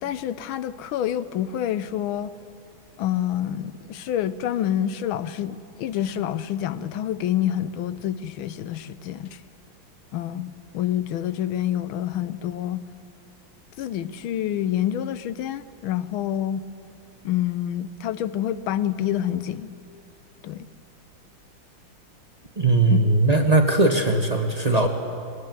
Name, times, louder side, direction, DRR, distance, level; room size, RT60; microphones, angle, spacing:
voice 1, 0.0-2.3 3.0-9.4 10.1-12.8 13.8-16.6 17.2-19.8 20.4-20.7 22.9-23.0, left 11 dB, 85° left, 14 dB, 1.5 m, -27 dB
voice 2, 22.6-24.9, right 2 dB, 25° right, 3 dB, 1.1 m, -19 dB
21.0 x 18.0 x 9.3 m, 2.6 s
omnidirectional pair, 2.2 m